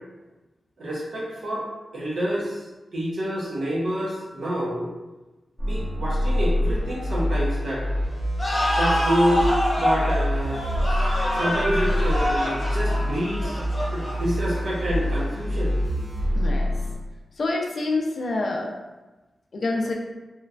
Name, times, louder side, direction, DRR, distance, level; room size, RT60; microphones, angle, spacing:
voice 1, 0.8-1.7 1.9-4.9 5.7-7.9 8.7-9.5 9.7-10.6 11.3-13.6 13.9-15.8, equal, 60° right, -5 dB, 0.7 m, -27 dB
sound 1, 5.6-16.9, equal, 25° right, 0.9 m, -26 dB
sound 2, 8.4-14.8, equal, 20° left, 0.8 m, -26 dB
voice 2, 16.4-16.7 17.4-18.8 19.5-19.9, left 2 dB, 50° left, 0 dB, 0.3 m, -26 dB
3.0 x 2.3 x 2.3 m, 1.1 s
wide cardioid pair, 160°, 0 cm